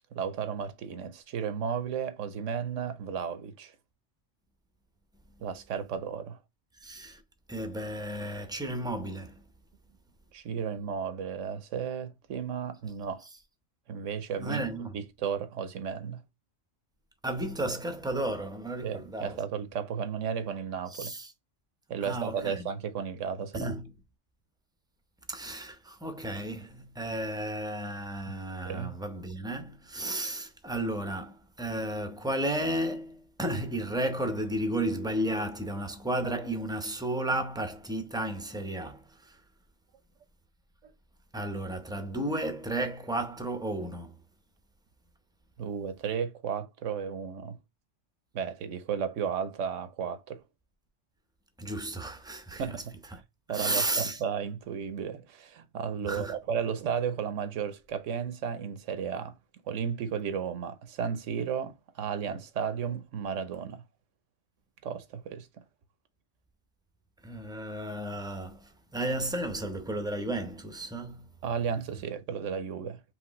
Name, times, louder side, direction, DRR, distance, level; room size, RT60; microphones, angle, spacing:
voice 1, 0.1-3.7 5.4-6.4 10.3-13.2 13.9-14.6 14.9-16.2 18.8-21.1 21.9-23.7 28.6-29.0 45.6-47.6 48.3-50.4 52.6-53.0 53.5-59.4 59.7-63.8 64.8-65.5 71.4-73.0, right 7 dB, 80° right, 1.1 m, -34 dB
voice 2, 6.8-7.2 7.5-9.4 14.3-15.0 17.2-19.4 20.9-21.3 22.0-22.7 23.5-23.9 25.3-39.4 41.3-44.2 51.6-52.8 53.1-53.2 53.5-54.2 56.0-56.4 67.2-71.3, right 1 dB, 5° right, 0.5 m, -33 dB
5.1 x 3.1 x 3.0 m
omnidirectional pair, 1.3 m